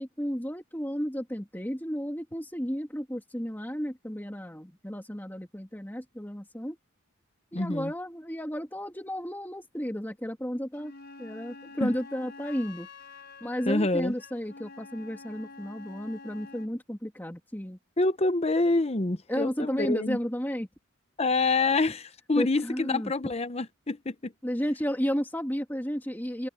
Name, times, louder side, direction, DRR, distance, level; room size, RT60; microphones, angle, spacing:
voice 1, 0.0-6.8 7.5-10.9 11.2-12.9 13.4-17.8 19.3-20.7 22.4-23.1 24.4-26.5, equal, 10° left, 2.8 m, -33 dB
voice 2, 7.5-7.9 11.8-11.9 13.7-14.1 18.0-20.2 21.2-24.3, left 3 dB, 30° left, 0.9 m, -27 dB
Wind instrument woodwind instrument, 10.7-16.8, left 4 dB, 50° left, 5.7 m, -48 dB
head